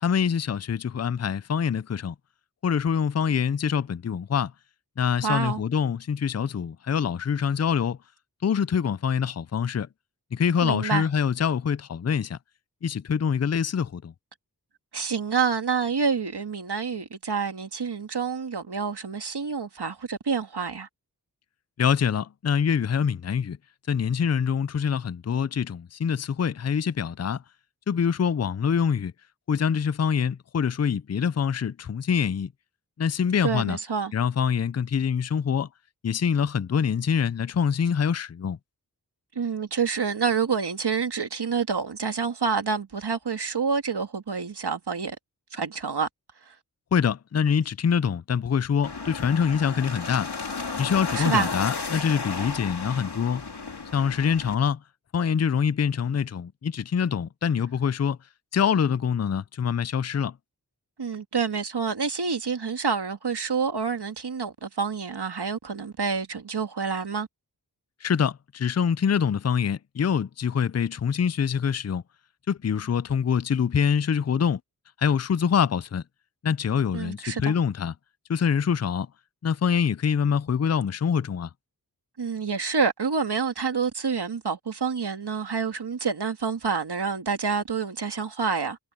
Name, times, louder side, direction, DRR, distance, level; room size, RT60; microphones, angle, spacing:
voice 1, 0.0-2.1 2.6-4.5 5.0-8.0 8.4-9.9 10.3-12.4 12.8-14.1 21.8-23.6 23.9-27.4 27.9-29.1 29.5-32.5 33.0-33.8 34.1-35.7 36.0-38.6 46.9-50.3 50.8-53.4 53.9-54.8 55.1-58.2 58.5-60.4 68.0-72.0 72.5-74.6 75.0-76.0 76.4-77.9 78.3-79.1 79.4-81.5, left 7 dB, 40° left, 0.5 m, -25 dB
voice 2, 5.2-5.6 10.6-11.1 14.9-20.9 33.4-34.1 39.4-45.2 45.5-46.1 46.5-46.6 51.1-51.5 61.0-67.3 76.9-77.5 82.2-88.8, right 5 dB, 90° right, 2.0 m, -28 dB
sound 1, 48.8-54.5, left 4 dB, 85° left, 3.1 m, -33 dB
wide cardioid pair, 70°, 39 cm